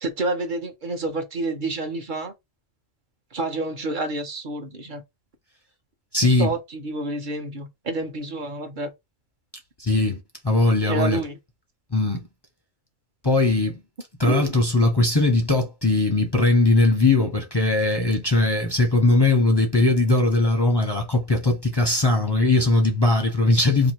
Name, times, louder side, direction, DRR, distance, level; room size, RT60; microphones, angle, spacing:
voice 1, 0.0-2.3 3.3-5.0 6.4-8.9 10.9-11.4 14.3-14.6, right 2 dB, 40° right, 1.0 m, -28 dB
voice 2, 6.1-6.5 9.8-11.2 11.9-12.3 13.2-13.8 14.2-23.9, left 2 dB, 25° left, 0.6 m, -20 dB
2.9 x 2.7 x 4.4 m
omnidirectional pair, 1.4 m